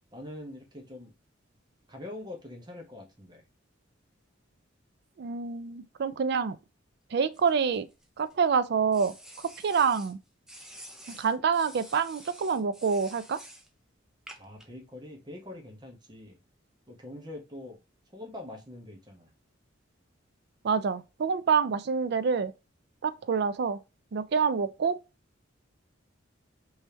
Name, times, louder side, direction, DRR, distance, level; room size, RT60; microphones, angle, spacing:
voice 1, 0.1-1.1 1.9-3.4 14.4-16.4 16.9-17.8 18.1-19.3, left 1 dB, 20° right, 0.9 m, -44 dB
voice 2, 5.2-6.6 7.1-7.9 8.2-9.1 9.6-10.2 11.1-13.4 20.6-22.5 23.0-23.8 24.1-25.0, right 6 dB, 55° right, 0.4 m, -27 dB
sound 1, 7.3-8.3 8.9-10.1 10.5-13.7 14.3-14.6, equal, 5° right, 0.5 m, -49 dB
3.4 x 3.1 x 2.7 m
head